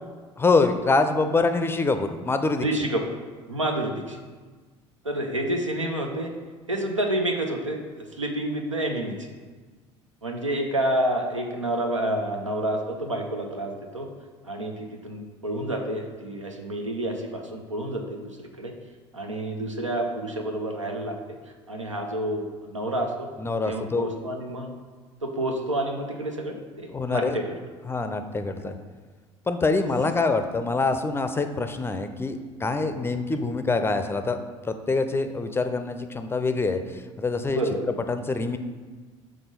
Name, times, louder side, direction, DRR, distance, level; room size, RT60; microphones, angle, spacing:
voice 1, 0.4-2.7 23.4-24.1 26.9-27.4 27.8-28.7 29.5-34.4 34.6-37.6 38.1-38.6, left 3 dB, 15° left, 8 dB, 0.5 m, -25 dB
voice 2, 2.6-3.2 3.5-4.2 5.0-6.3 6.7-9.3 10.2-14.1 14.4-18.7 19.1-21.4 21.7-23.3 23.7-24.7 25.2-27.5 28.6-28.7 37.5-38.0, right 1 dB, 90° right, 3 dB, 0.6 m, -29 dB
6.0 x 3.7 x 5.2 m, 1.4 s
figure-of-eight pair, 60°, 16 cm